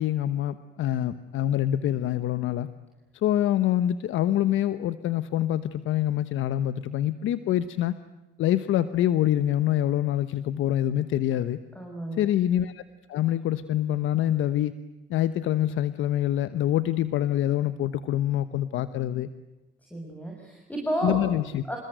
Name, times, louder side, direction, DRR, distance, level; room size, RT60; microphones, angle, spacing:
voice 1, 0.0-2.7 3.1-7.9 8.4-11.6 12.1-12.8 13.1-14.7 15.1-19.3 21.0-21.6, left 12 dB, 85° left, 13 dB, 1.1 m, -25 dB
voice 2, 11.8-12.3 19.9-21.2 21.7-21.8, right 1 dB, 5° left, 1 dB, 6.8 m, -31 dB
28.0 x 21.0 x 9.1 m, 1.1 s
cardioid pair, 90°, 20 cm